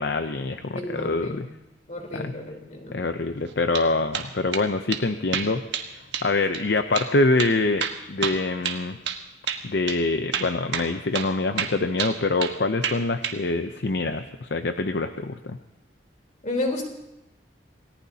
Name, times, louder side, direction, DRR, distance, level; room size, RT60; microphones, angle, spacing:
voice 1, 0.0-1.5 2.1-2.3 2.9-9.0 9.6-15.6, left 3 dB, 65° left, 8 dB, 0.7 m, -25 dB
voice 2, 0.7-1.4 1.9-3.1 16.4-16.9, left 2 dB, 45° left, 1 dB, 3.6 m, -31 dB
sound 1, 3.5-3.9 4.1-4.7 4.9-5.0 5.3-5.9 6.1-6.3 6.5-6.6 7.0-7.1 7.4-9.2 9.5-9.6 9.9-10.0 10.3-10.9 11.1-11.3 11.6-12.6 12.8-13.4, right 7 dB, 80° right, 1.4 m, -29 dB
28.0 x 18.0 x 2.8 m, 0.91 s
head